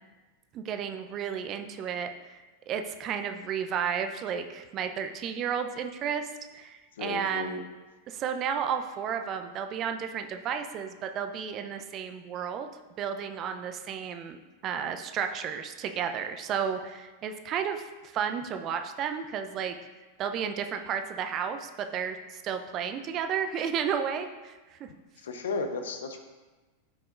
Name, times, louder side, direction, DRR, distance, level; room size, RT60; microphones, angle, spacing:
voice 1, 0.5-2.4 2.7-6.3 6.5-7.6 8.1-12.7 13.0-14.4 14.6-19.8 20.2-24.9, right 7 dB, 35° right, 7 dB, 0.7 m, -32 dB
voice 2, 7.0-7.6 25.2-26.2, left 4 dB, 65° left, 6 dB, 0.9 m, -34 dB
14.0 x 5.7 x 2.6 m, 1.2 s
figure-of-eight pair, 90°, 0 cm